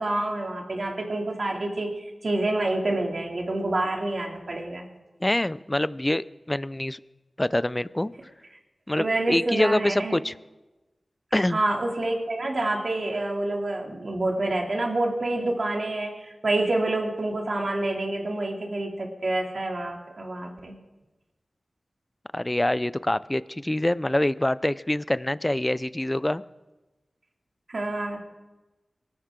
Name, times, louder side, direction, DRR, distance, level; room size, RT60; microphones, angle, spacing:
voice 1, 0.0-4.8 9.0-10.2 11.5-20.7 27.7-28.2, right 2 dB, 65° right, 1 dB, 2.7 m, -27 dB
voice 2, 5.2-7.0 7.4-8.1 8.9-10.3 11.3-11.6 22.3-26.4, left 1 dB, 20° left, 16 dB, 0.5 m, -25 dB
23.0 x 13.5 x 3.8 m, 1.1 s
wide cardioid pair, 60°, 0 cm